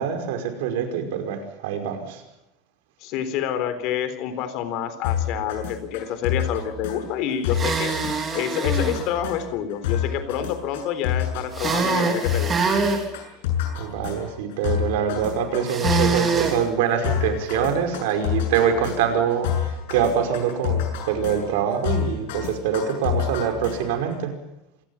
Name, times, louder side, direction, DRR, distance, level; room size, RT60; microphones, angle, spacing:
voice 1, 0.0-2.2 13.8-24.3, right 8 dB, 80° right, 7 dB, 5.3 m, -24 dB
voice 2, 3.0-12.6, left 9 dB, 50° left, 11 dB, 3.8 m, -28 dB
sound 1, 5.0-24.1, left 9 dB, 85° left, 7.4 m, -29 dB
sound 2, 7.5-9.0 11.5-13.0 15.7-16.6, right 4 dB, 20° right, 3.5 m, -24 dB
27.0 x 19.0 x 7.3 m, 0.87 s
cardioid pair, 170°, 0 cm